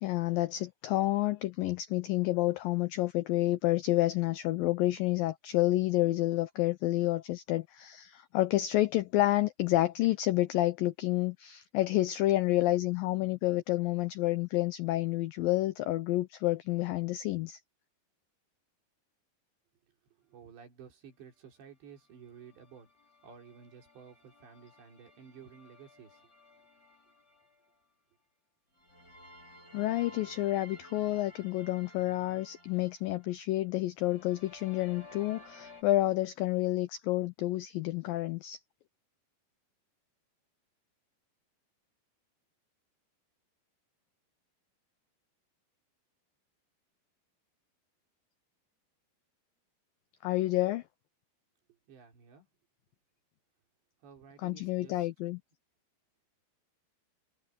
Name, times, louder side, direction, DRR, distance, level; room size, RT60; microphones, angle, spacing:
voice 1, 0.0-17.6 29.7-38.6 50.2-50.8 54.4-55.4, left 16 dB, 85° left, 2.0 m, -29 dB
voice 2, 20.1-22.9 23.2-26.2 51.7-52.5 54.0-55.1, right 7 dB, 80° right, 6.3 m, -53 dB
Lost Souls II, 21.9-27.7 28.8-33.6 34.0-35.8, left 1 dB, 20° left, 5.7 m, -55 dB
omnidirectional pair, 5.0 m